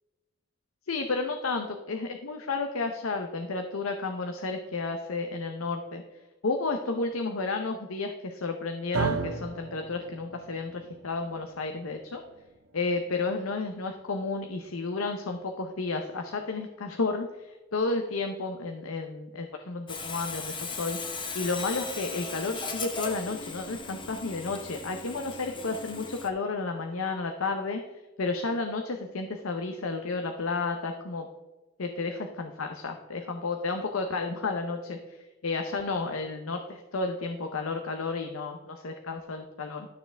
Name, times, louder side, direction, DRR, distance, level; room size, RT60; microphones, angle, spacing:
voice 1, 0.9-6.0 6.4-12.2 12.7-27.8 28.2-31.3 31.8-32.1 32.4-39.9, left 3 dB, 75° left, 5 dB, 0.8 m, -32 dB
sound 1, 8.9-17.2, right 4 dB, 65° right, 0.9 m, -38 dB
Sawing, 19.9-26.3, left 4 dB, 20° left, 0.8 m, -37 dB
12.5 x 6.7 x 3.4 m, 1.1 s
head